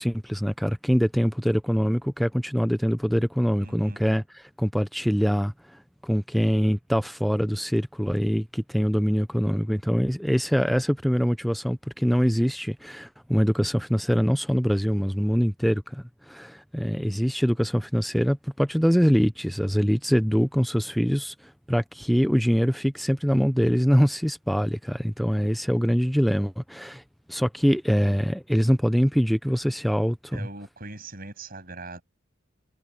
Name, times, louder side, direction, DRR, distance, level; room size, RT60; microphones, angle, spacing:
voice 1, 0.0-27.0 27.3-30.5, equal, ahead, 0.5 m, -24 dB
voice 2, 3.6-4.0 30.3-32.0, right 2 dB, 45° right, 7.8 m, -40 dB
head